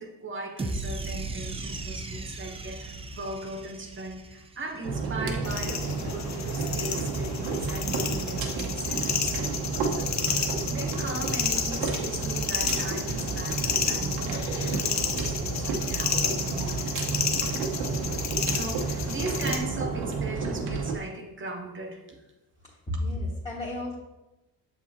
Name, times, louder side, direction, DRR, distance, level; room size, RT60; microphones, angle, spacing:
voice 1, 0.0-17.1 18.5-22.2, right 2 dB, 30° right, 3 dB, 1.0 m, -39 dB
sound 1, 0.6-4.9, right 2 dB, 15° right, 0.5 m, -36 dB
sound 2, 4.8-21.0, right 4 dB, 90° right, 1.0 m, -31 dB
sound 3, 5.4-19.6, left 7 dB, 45° left, 0.8 m, -31 dB
voice 2, 22.6-23.9, left 1 dB, 15° left, -7 dB, 1.4 m, -32 dB
6.9 x 5.7 x 2.7 m, 1.0 s
cardioid pair, 95°, 37 cm